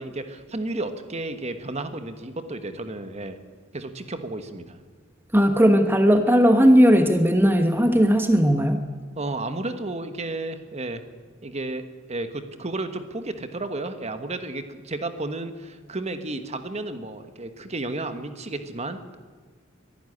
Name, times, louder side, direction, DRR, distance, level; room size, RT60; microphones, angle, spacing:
voice 1, 0.0-3.4 3.7-4.8 9.2-11.0 11.4-11.8 12.1-19.2, right 2 dB, 35° right, 9 dB, 1.4 m, -32 dB
voice 2, 5.3-8.8, equal, 10° right, 6 dB, 1.1 m, -17 dB
23.0 x 12.0 x 10.0 m, 1.5 s
head